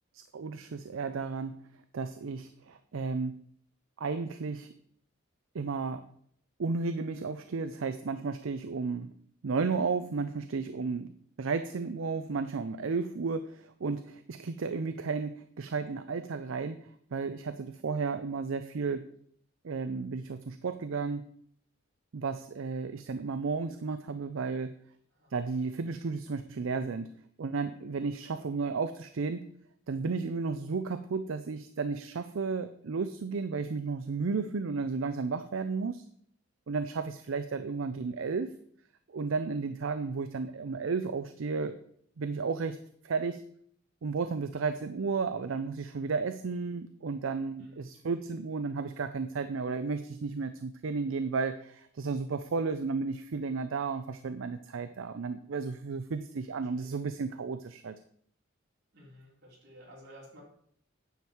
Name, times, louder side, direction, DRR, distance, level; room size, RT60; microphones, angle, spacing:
voice 1, 0.1-1.6 1.9-3.3 4.0-4.7 5.5-6.0 6.6-9.1 9.4-11.1 11.4-19.0 19.6-21.3 22.1-24.7 25.3-27.1 27.4-29.4 29.9-36.0 36.7-38.5 39.1-41.8 42.2-42.8 43.0-43.4 44.0-57.9, right 4 dB, 70° right, 10 dB, 0.5 m, -33 dB
voice 2, 58.9-60.4, equal, 50° right, -4 dB, 3.8 m, -54 dB
9.4 x 7.2 x 4.5 m, 0.63 s
head